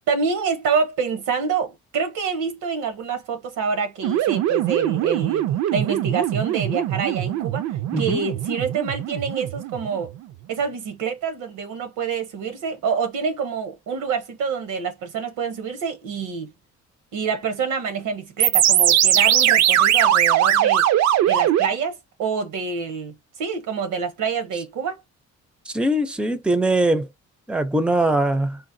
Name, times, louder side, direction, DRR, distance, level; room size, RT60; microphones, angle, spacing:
voice 1, 0.0-5.5 5.7-7.6 8.0-10.1 10.5-16.5 17.1-20.8 21.3-25.0, right 5 dB, 85° right, 0.9 m, -27 dB
sound 1, 4.0-10.2 18.4-21.7, right 11 dB, 65° right, 0.4 m, -20 dB
voice 2, 25.7-27.1 27.5-28.6, right 1 dB, 5° right, 0.4 m, -21 dB
3.9 x 2.1 x 2.6 m
cardioid pair, 90°, 30 cm